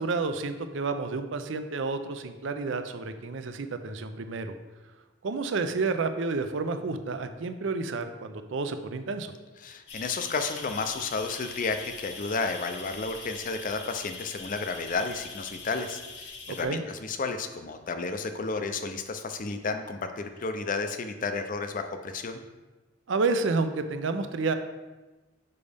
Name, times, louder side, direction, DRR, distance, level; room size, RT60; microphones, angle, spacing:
voice 1, 0.0-4.5 5.2-9.3 16.5-16.8 23.1-24.5, right 4 dB, 65° right, 9 dB, 0.5 m, -30 dB
voice 2, 9.6-22.4, left 4 dB, 40° left, 7 dB, 0.5 m, -32 dB
sound 1, 9.9-16.6, left 4 dB, 60° left, 0.9 m, -42 dB
6.8 x 5.2 x 3.4 m, 1.2 s
head